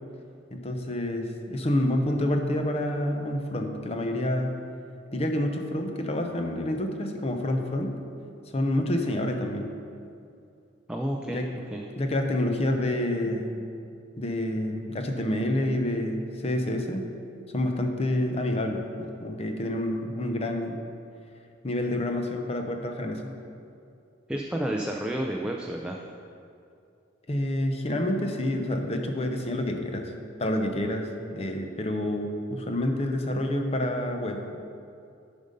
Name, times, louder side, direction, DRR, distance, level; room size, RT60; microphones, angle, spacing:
voice 1, 0.5-4.6 5.1-8.0 8.5-9.7 11.3-11.5 12.0-13.6 14.2-17.0 17.5-20.8 21.6-23.3 27.3-30.1 30.4-34.6, left 1 dB, 30° left, 4 dB, 0.7 m, -28 dB
voice 2, 10.9-11.4 11.7-11.8 24.3-26.0, right 1 dB, 5° right, 0 dB, 0.4 m, -30 dB
10.5 x 5.3 x 5.2 m, 2.5 s
head